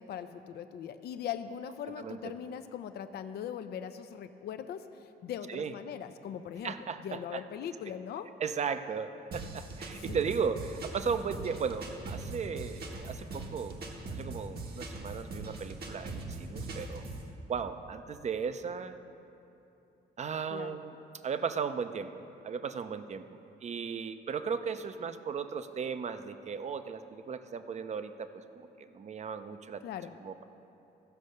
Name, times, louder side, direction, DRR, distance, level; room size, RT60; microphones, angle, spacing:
voice 1, 0.0-6.7 7.0-8.3 10.1-10.2 20.5-20.8 29.8-30.1, left 9 dB, 65° left, 9 dB, 0.5 m, -40 dB
voice 2, 6.6-7.4 8.4-13.8 14.1-17.0 17.5-19.0 20.2-21.0 21.2-23.2 23.6-29.8 30.2-30.4, right 6 dB, 40° right, 10 dB, 0.6 m, -36 dB
sound 1, 9.3-17.3, right 2 dB, 60° right, 1.4 m, -41 dB
14.5 x 5.3 x 6.6 m, 2.9 s
cardioid pair, 90°, 18 cm